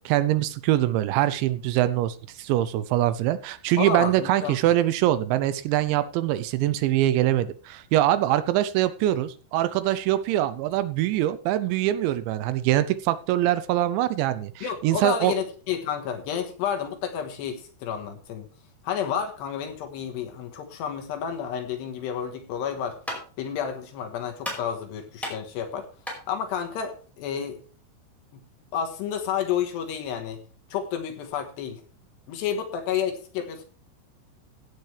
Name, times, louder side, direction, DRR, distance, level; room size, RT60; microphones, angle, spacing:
voice 1, 0.1-15.3, right 13 dB, 80° right, 13 dB, 2.8 m, -23 dB
voice 2, 3.8-4.6 14.6-18.5 18.8-23.0 23.4-25.8 26.3-27.6 28.7-30.4 30.7-31.8 32.3-33.6, left 8 dB, 70° left, 5 dB, 3.3 m, -30 dB
sound 1, 22.5-27.8, equal, ahead, 4.2 m, -39 dB
16.0 x 8.9 x 3.3 m, 0.38 s
omnidirectional pair, 5.4 m